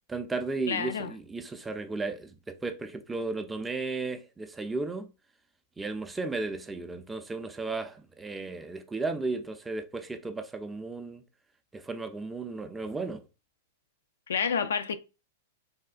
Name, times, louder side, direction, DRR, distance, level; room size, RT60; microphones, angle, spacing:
voice 1, 0.1-5.1 5.8-11.2 11.7-13.2, right 3 dB, 10° right, 0.4 m, -34 dB
voice 2, 0.7-1.1 14.3-15.0, left 6 dB, 85° left, 0.3 m, -29 dB
3.3 x 2.1 x 2.4 m
hypercardioid pair, 120°, 0 cm